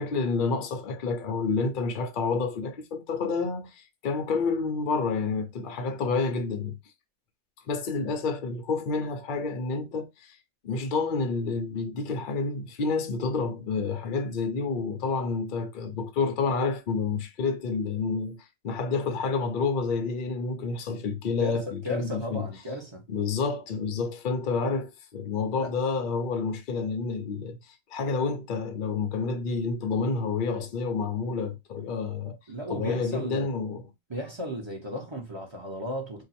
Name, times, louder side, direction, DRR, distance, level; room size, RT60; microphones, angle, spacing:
voice 1, 0.0-6.8 7.7-10.4 10.6-22.5 23.1-32.4 32.7-33.8, left 4 dB, 60° left, 0.5 m, -29 dB
voice 2, 21.4-23.0 25.6-25.7 32.5-33.5 34.1-36.2, left 1 dB, 25° right, 0.8 m, -35 dB
2.8 x 2.3 x 4.1 m
omnidirectional pair, 1.5 m